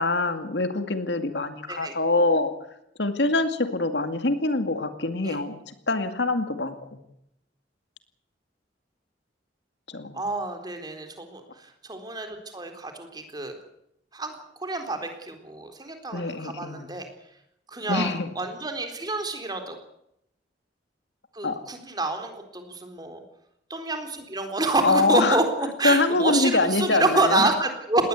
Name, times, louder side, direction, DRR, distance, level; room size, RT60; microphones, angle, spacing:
voice 1, 0.0-2.5 3.0-7.0 9.9-10.2 16.1-16.9 17.9-18.3 21.4-21.6 24.8-25.4 25.8-27.5, left 2 dB, 70° left, 8 dB, 2.3 m, -24 dB
voice 2, 10.1-13.5 14.1-17.1 17.7-19.8 21.3-23.2 23.7-28.1, right 2 dB, 25° right, 6 dB, 3.8 m, -28 dB
20.5 x 18.5 x 8.4 m, 0.78 s
head